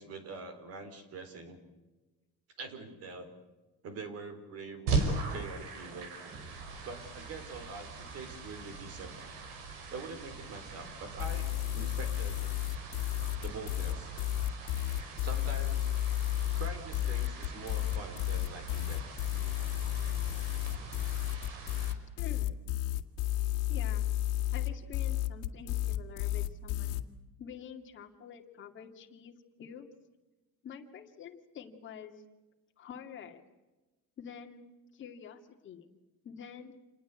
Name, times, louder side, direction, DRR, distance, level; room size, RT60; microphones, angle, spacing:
voice 1, 0.0-1.6 2.6-3.3 3.8-6.1 6.8-9.1 9.9-12.4 13.4-14.1 15.2-15.9 16.6-19.0, right 4 dB, 40° right, 10 dB, 4.0 m, -44 dB
sound 1, 4.9-21.9, right 3 dB, 85° right, 5.6 m, -40 dB
sound 2, 11.2-27.0, left 14 dB, 85° left, 2.0 m, -32 dB
voice 2, 22.2-22.6 23.7-24.1 24.5-27.0 27.4-29.9 30.6-32.1 32.8-33.4 34.2-34.6 34.9-35.9 36.2-36.8, left 7 dB, 30° left, 3 dB, 2.4 m, -47 dB
28.0 x 20.0 x 8.3 m, 1.2 s
cardioid pair, 175°, 36 cm